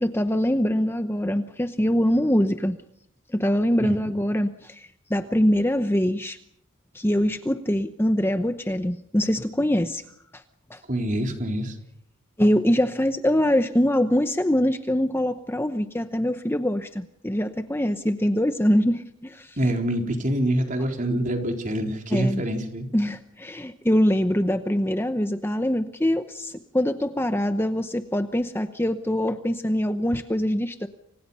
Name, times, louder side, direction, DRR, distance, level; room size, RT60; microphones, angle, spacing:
voice 1, 0.0-2.8 3.3-6.4 6.9-10.0 10.3-10.4 10.7-10.8 12.4-19.6 22.1-22.4 22.9-30.9, equal, 10° left, 8 dB, 0.9 m, -23 dB
voice 2, 10.9-11.7 19.6-22.9, right 1 dB, 35° right, 3 dB, 4.0 m, -25 dB
29.5 x 26.0 x 5.6 m, 0.73 s
head